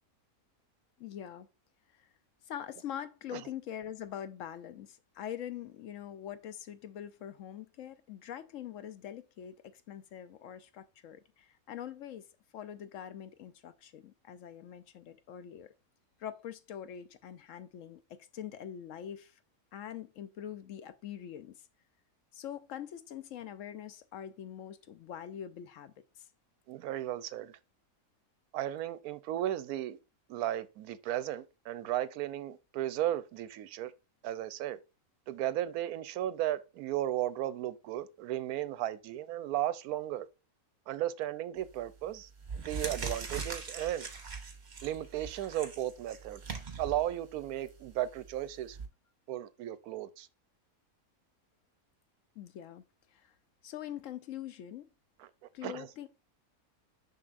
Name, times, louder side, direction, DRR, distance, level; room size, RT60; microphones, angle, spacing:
voice 1, 1.0-1.5 1.9-2.1 2.5-12.3 12.5-15.7 16.2-19.4 19.7-21.6 22.3-26.3 52.4-52.8 53.1-53.3 53.6-54.9 55.5-56.1, left 10 dB, 70° left, 0.9 m, -44 dB
voice 2, 26.7-27.5 28.5-30.0 30.3-33.9 34.2-34.8 35.3-40.3 40.9-44.1 44.8-46.4 46.8-48.8 49.3-50.3 55.2-55.3 55.6-55.9, right 13 dB, 90° right, 1.1 m, -35 dB
sound 1, 41.6-41.9 42.4-48.9, right 5 dB, 35° right, 0.9 m, -41 dB
6.6 x 5.6 x 2.5 m
omnidirectional pair, 1.5 m